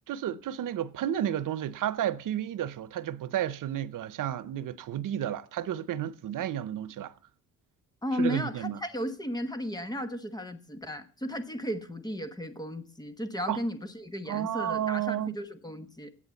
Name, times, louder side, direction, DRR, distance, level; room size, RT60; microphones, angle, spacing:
voice 1, 0.1-7.1 8.2-8.8 13.5-13.6 14.3-15.4, right 11 dB, 90° right, 0.8 m, -32 dB
voice 2, 8.0-16.1, equal, 15° left, 1.2 m, -34 dB
11.0 x 8.4 x 8.2 m
wide cardioid pair, 150°, 31 cm